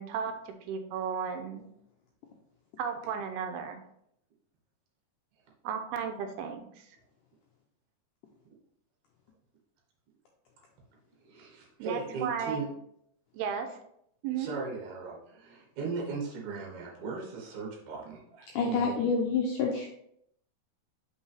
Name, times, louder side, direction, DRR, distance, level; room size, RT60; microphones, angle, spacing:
voice 1, 0.0-1.6 2.8-3.8 5.6-6.7 11.8-12.6 13.3-13.8 14.2-14.5, right 7 dB, 85° right, 6 dB, 2.6 m, -34 dB
voice 2, 11.2-12.7 14.4-19.1, right 4 dB, 60° right, -2 dB, 2.4 m, -38 dB
voice 3, 18.5-19.9, left 5 dB, 90° left, 0 dB, 1.8 m, -28 dB
5.7 x 5.3 x 3.3 m, 0.72 s
omnidirectional pair, 4.5 m